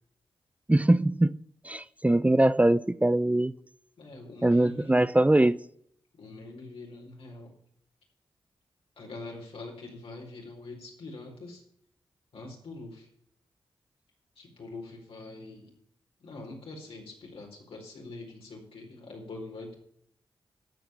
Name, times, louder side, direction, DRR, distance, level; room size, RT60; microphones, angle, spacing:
voice 1, 0.7-1.3 1.6-3.5 4.4-5.6, right 1 dB, 15° right, 0.6 m, -22 dB
voice 2, 4.0-5.0 6.2-7.6 9.0-11.6 12.3-13.1 14.4-15.7 16.2-19.8, left 2 dB, 75° left, 4.5 m, -44 dB
13.0 x 5.9 x 9.3 m
cardioid pair, 45°, 10 cm